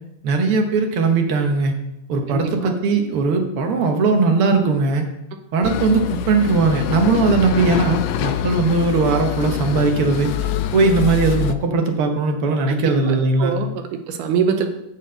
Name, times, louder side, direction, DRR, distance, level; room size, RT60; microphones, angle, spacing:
voice 1, 0.2-1.7 2.1-5.1 5.5-10.3 10.7-13.5, right 3 dB, 65° right, 4 dB, 1.4 m, -19 dB
voice 2, 2.3-2.8 12.7-14.7, right 7 dB, 80° right, 6 dB, 2.3 m, -24 dB
sound 1, 5.6-11.5, left 10 dB, 85° left, 1.6 m, -25 dB
9.8 x 4.2 x 7.5 m, 0.89 s
omnidirectional pair, 3.7 m